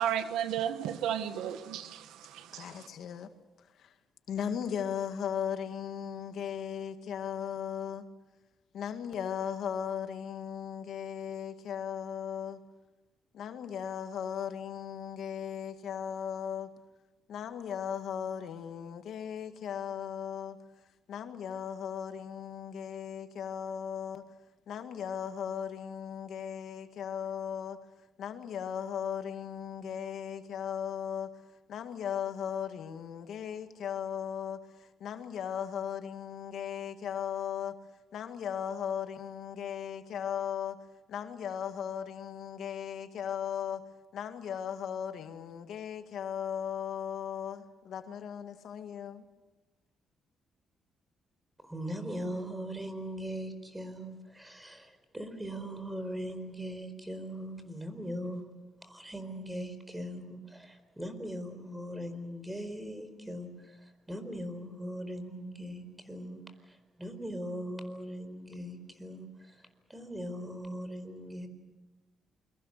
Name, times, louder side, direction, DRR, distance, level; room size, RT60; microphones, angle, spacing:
voice 1, 0.0-2.9, right 10 dB, 90° right, 1.4 m, -33 dB
voice 2, 2.5-3.3 3.6-3.9 4.3-8.0 8.7-12.6 13.3-16.7 17.3-20.6 21.1-24.2 24.7-27.8 28.2-31.3 31.7-37.7 38.1-40.8 41.1-43.8 44.1-49.2, left 8 dB, 70° left, 2.0 m, -37 dB
voice 3, 51.6-58.5 58.8-71.5, equal, 10° right, 4.5 m, -40 dB
28.5 x 23.5 x 6.7 m
cardioid pair, 90°, 0 cm